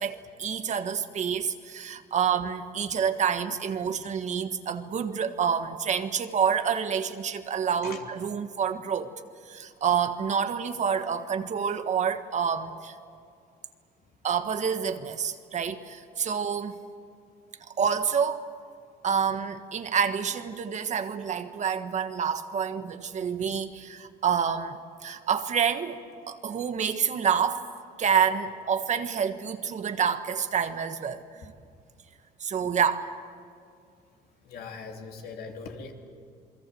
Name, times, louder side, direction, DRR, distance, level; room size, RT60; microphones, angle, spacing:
voice 1, 0.0-9.1 9.4-12.9 14.2-16.8 17.7-18.4 19.0-26.0 26.3-27.6 28.0-31.5 32.4-33.0, right 7 dB, 45° right, 9 dB, 1.4 m, -28 dB
voice 2, 34.4-35.9, left 5 dB, 65° left, 2 dB, 3.3 m, -41 dB
28.0 x 22.0 x 7.8 m, 2.3 s
cardioid pair, 110°, 17 cm